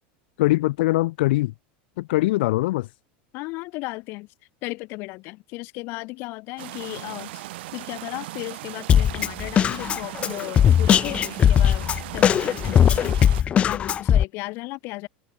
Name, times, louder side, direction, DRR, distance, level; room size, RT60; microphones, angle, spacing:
voice 1, 0.4-1.5 2.0-2.9, left 19 dB, 70° left, 6.1 m, -22 dB
voice 2, 3.3-4.3 4.6-7.4 7.7-15.1, left 23 dB, 40° left, 7.8 m, -35 dB
sound 1, 6.6-13.4, right 17 dB, 80° right, 4.6 m, -38 dB
Drum kit, 8.9-14.2, left 9 dB, 20° left, 1.9 m, -19 dB
supercardioid pair, 175°, 6 cm